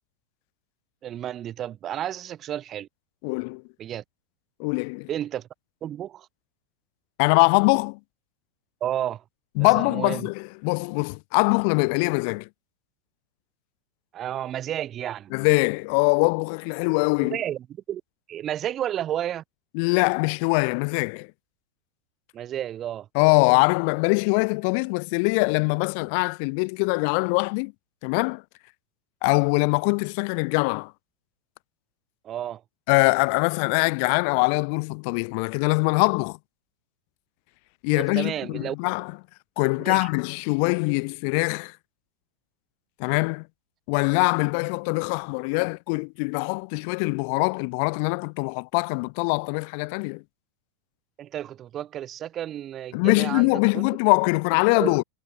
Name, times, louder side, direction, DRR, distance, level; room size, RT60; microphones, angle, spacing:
voice 1, 1.0-2.9 3.8-4.0 5.1-5.5 5.8-6.3 8.8-9.2 9.6-10.3 14.1-15.3 17.2-18.0 18.3-19.4 22.3-23.1 32.2-32.6 38.0-38.8 39.8-40.0 51.2-53.8 54.7-54.9, right 11 dB, 30° right, 4.1 m, -31 dB
voice 2, 3.2-3.6 4.6-5.1 7.2-8.0 9.6-12.5 15.3-17.4 19.7-21.3 23.1-27.7 28.0-28.4 29.2-30.9 32.9-36.4 37.8-39.2 39.6-41.8 43.0-43.5 43.9-50.2 52.9-55.0, left 37 dB, 45° left, 2.9 m, -23 dB
figure-of-eight pair, 90°, 0 cm